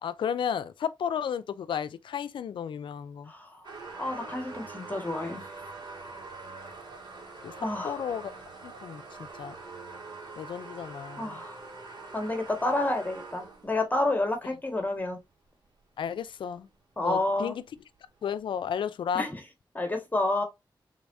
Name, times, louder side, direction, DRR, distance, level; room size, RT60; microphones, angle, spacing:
voice 1, 0.0-3.3 7.4-7.5 7.8-8.3 8.6-9.0 9.4-9.5 10.4-11.4 16.0-16.7 17.0-17.6 18.2-19.3, left 8 dB, 85° left, 0.5 m, -33 dB
voice 2, 3.3-3.6 4.0-5.4 7.6-8.0 11.2-11.6 12.1-15.2 17.0-17.5 19.1-19.4 19.7-20.4, left 2 dB, 20° left, 1.6 m, -29 dB
sound 1, 3.6-13.8 14.4-14.5 16.2-16.3 16.6-16.7 17.1-17.2 17.8-17.9, right 3 dB, 70° right, 2.5 m, -44 dB
4.7 x 3.8 x 2.6 m
cardioid pair, 55°, 8 cm